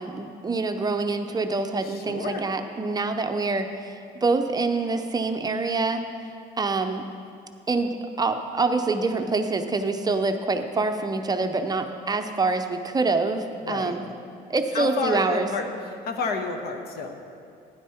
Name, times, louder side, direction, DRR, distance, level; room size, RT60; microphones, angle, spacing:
voice 1, 0.0-6.0 6.6-7.0 7.7-14.0 14.5-15.5, right 3 dB, 25° right, 6 dB, 0.6 m, -26 dB
voice 2, 1.8-2.5 13.6-14.0 14.7-15.7 16.0-17.2, left 4 dB, 70° left, 5 dB, 1.2 m, -30 dB
12.0 x 10.5 x 4.3 m, 2.4 s
cardioid pair, 110°, 17 cm